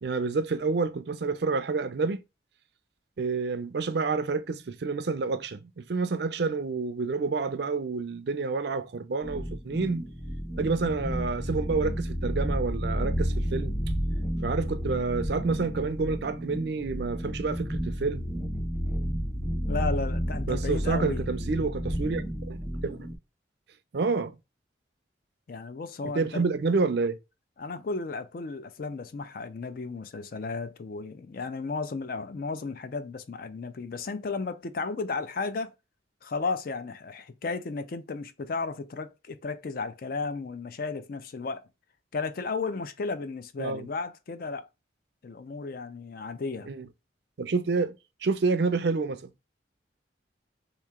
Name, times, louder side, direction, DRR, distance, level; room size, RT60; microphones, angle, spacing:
voice 1, 0.0-2.2 3.2-10.1 10.6-13.7 14.4-18.2 20.5-23.1 23.9-24.3 26.0-27.2 43.6-43.9 46.7-46.8 47.4-48.0 48.2-49.3, right 4 dB, 60° right, 0.4 m, -29 dB
sound 1, 9.2-23.2, equal, 20° left, 0.9 m, -31 dB
voice 2, 19.7-21.3 25.5-26.5 27.6-35.7 36.2-41.7 42.1-44.7 45.2-46.7, left 4 dB, 50° left, 0.4 m, -34 dB
3.0 x 2.8 x 3.4 m
head